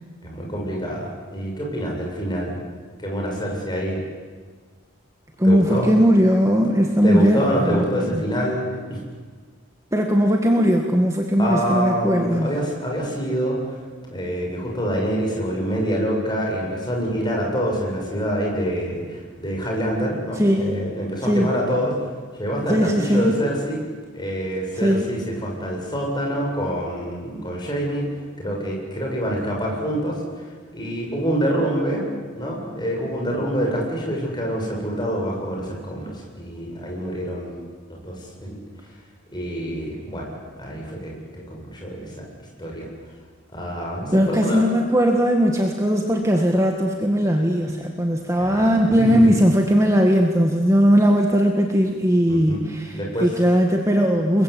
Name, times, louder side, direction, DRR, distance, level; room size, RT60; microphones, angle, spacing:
voice 1, 0.2-2.6 3.0-4.0 5.4-5.9 7.0-9.0 11.4-13.6 14.1-22.0 22.4-23.8 24.1-28.1 28.4-32.1 32.3-37.6 38.0-38.6 39.3-40.3 40.6-42.3 42.6-42.9 43.5-44.6 48.4-49.3 52.3-52.6 52.9-53.3, equal, 20° left, -1 dB, 7.5 m, -26 dB
voice 2, 5.4-8.2 9.9-12.5 20.4-20.7 21.2-21.5 22.7-23.3 24.8-25.1 44.1-52.9 53.2-54.4, equal, 15° right, 2 dB, 1.8 m, -19 dB
30.0 x 22.0 x 8.6 m, 1.5 s
head